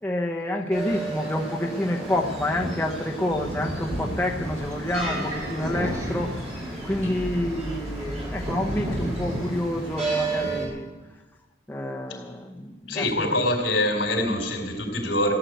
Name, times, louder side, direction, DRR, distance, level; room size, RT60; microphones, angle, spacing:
voice 1, 0.0-6.5 6.8-10.9 11.7-13.0 13.3-13.4, left 1 dB, 10° left, -1 dB, 1.0 m, -28 dB
sound 1, 0.7-10.7, right 2 dB, 35° right, 6.1 m, -31 dB
Bus, 4.4-9.5, equal, 20° right, 1.9 m, -37 dB
voice 2, 12.8-15.4, left 1 dB, 75° left, 2 dB, 4.2 m, -25 dB
16.0 x 11.0 x 8.1 m, 1.1 s
head